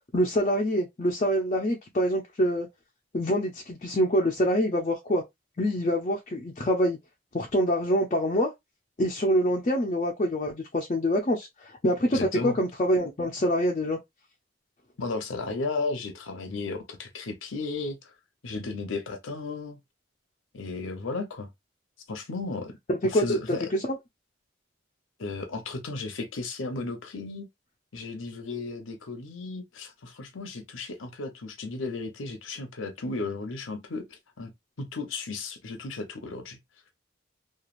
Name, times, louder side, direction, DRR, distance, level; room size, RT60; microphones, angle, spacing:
voice 1, 0.1-2.7 3.1-5.2 5.6-7.0 7.3-8.5 9.0-14.0 22.9-23.6 23.8-24.0, equal, 35° left, 0.5 m, -25 dB
voice 2, 12.1-12.6 15.0-18.1 18.4-19.8 20.5-21.5 22.1-22.7 23.0-23.7 25.2-27.5 27.9-34.5 34.8-36.6, left 3 dB, 85° left, 0.8 m, -34 dB
3.0 x 2.4 x 2.4 m
head